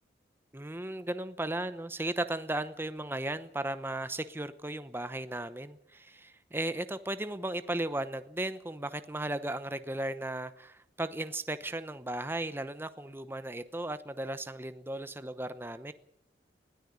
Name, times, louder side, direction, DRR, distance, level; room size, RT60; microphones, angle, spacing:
voice 1, 0.5-15.9, right 1 dB, 10° right, 0.8 m, -36 dB
21.0 x 13.5 x 9.5 m
head